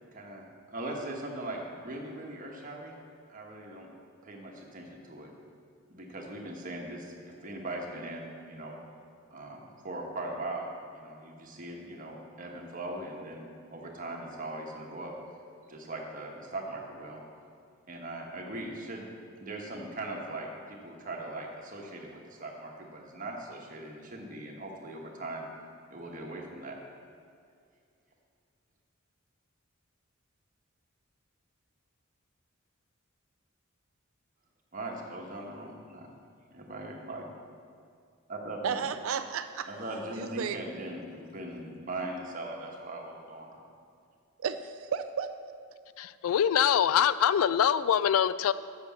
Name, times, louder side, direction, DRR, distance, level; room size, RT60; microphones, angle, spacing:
voice 1, 0.1-3.0 3.3-3.9 4.2-5.3 5.9-8.8 9.3-15.1 15.7-17.2 17.9-19.1 19.4-25.5 25.9-26.8 34.7-36.1 36.5-37.2 38.3-38.9 39.7-43.6, right 2 dB, 40° right, 0 dB, 1.4 m, -40 dB
voice 2, 38.6-39.7 40.1-40.6 44.4-45.3, right 7 dB, 75° right, 10 dB, 0.4 m, -33 dB
voice 3, 46.0-48.5, left 9 dB, 85° left, 16 dB, 0.3 m, -24 dB
8.0 x 6.8 x 7.1 m, 2.3 s
head